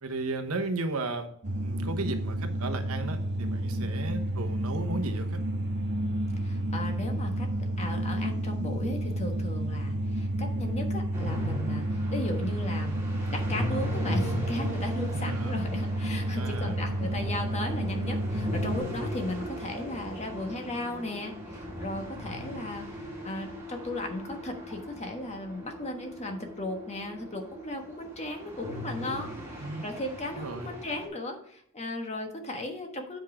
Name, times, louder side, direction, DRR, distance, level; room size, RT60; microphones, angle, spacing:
voice 1, 0.0-1.3 1.6-5.4 15.1-15.5 16.3-16.8 29.6-29.9 30.3-30.7, right 2 dB, 85° right, 8 dB, 1.1 m, -35 dB
sound 1, 1.4-18.8, right 1 dB, 55° right, 1.2 m, -30 dB
voice 2, 6.4-7.5 7.8-13.0 13.3-22.9 23.2-33.2, left 1 dB, 30° left, 4 dB, 1.3 m, -36 dB
sound 2, 11.1-31.1, equal, 15° right, 2.0 m, -38 dB
7.8 x 5.2 x 4.9 m, 0.69 s
head